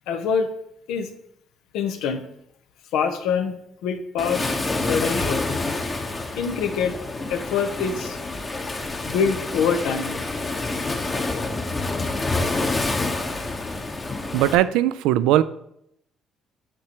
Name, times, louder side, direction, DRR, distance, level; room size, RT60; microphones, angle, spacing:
voice 1, 0.1-0.5 0.9-1.1 1.7-2.2 2.9-3.5 3.8-5.4 6.4-7.0 7.3-8.2 9.1-10.2, left 6 dB, 80° left, 7 dB, 0.8 m, -25 dB
Waves surf, 4.2-14.5, left 2 dB, 30° left, 1.1 m, -27 dB
voice 2, 14.3-15.4, right 13 dB, 80° right, 15 dB, 0.3 m, -19 dB
8.6 x 6.4 x 3.0 m, 0.76 s
supercardioid pair, 75°, 0 cm